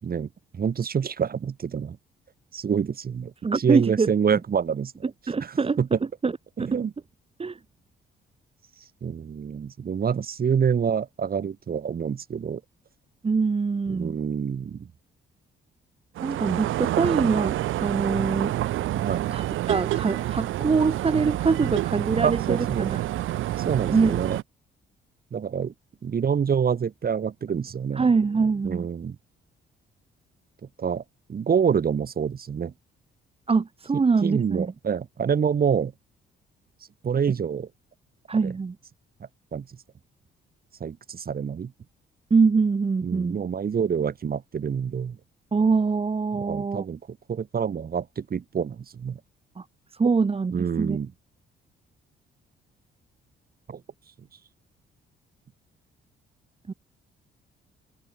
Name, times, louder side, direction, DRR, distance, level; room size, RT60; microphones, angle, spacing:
voice 1, 0.0-2.0 2.5-4.9 5.4-5.9 6.6-6.9 9.0-12.6 13.9-14.9 18.9-19.4 22.2-22.9 23.6-24.4 25.3-25.7 26.0-28.1 28.6-29.2 30.8-31.0 31.3-32.7 34.2-35.9 37.0-37.7 39.5-39.6 40.8-41.7 43.0-45.2 46.3-47.0 47.3-49.2 50.5-51.1 53.7-53.8, right 7 dB, 50° right, 6.7 m, -27 dB
voice 2, 3.4-4.4 5.3-5.8 6.2-6.3 6.6-6.8 7.4-7.6 13.2-14.2 16.2-18.6 19.3-23.0 23.9-24.2 28.0-28.9 33.5-34.7 38.3-38.8 42.3-43.4 45.5-46.8 49.6-49.7 50.0-51.0 56.7-56.8, right 4 dB, 30° right, 1.9 m, -24 dB
sound 1, 16.2-24.4, right 14 dB, 85° right, 1.9 m, -28 dB
cardioid pair, 90°, 20 cm